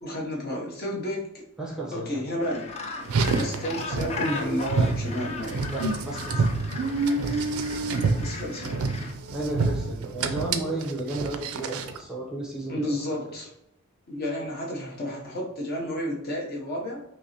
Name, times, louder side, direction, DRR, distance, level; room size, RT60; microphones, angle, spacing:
voice 1, 0.0-1.4 1.9-2.7 3.4-5.7 8.1-8.8 12.7-13.5 14.1-17.0, equal, 45° left, -3 dB, 0.8 m, -31 dB
voice 2, 1.6-2.1 5.7-6.4 9.3-12.9 13.2-13.3, right 2 dB, 5° right, -4 dB, 0.7 m, -33 dB
Gull seagull, 2.4-9.1, left 3 dB, 30° left, 0.4 m, -37 dB
Car, 3.0-12.0, right 3 dB, 65° right, 0.3 m, -28 dB
5.2 x 2.0 x 2.8 m, 0.82 s
head